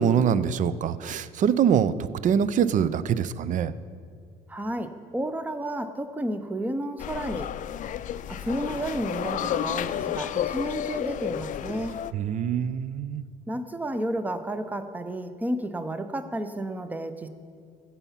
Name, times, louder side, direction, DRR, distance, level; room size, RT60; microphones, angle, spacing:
voice 1, 0.0-1.9 2.2-3.7 12.1-13.2, right 8 dB, 50° right, 15 dB, 0.5 m, -24 dB
voice 2, 4.5-7.5 8.3-12.0 13.5-17.3, right 1 dB, 10° right, 9 dB, 0.7 m, -31 dB
sound 1, 7.0-12.1, left 10 dB, 50° left, 0.4 m, -31 dB
15.5 x 5.6 x 5.8 m, 2.3 s
cardioid pair, 110°, 17 cm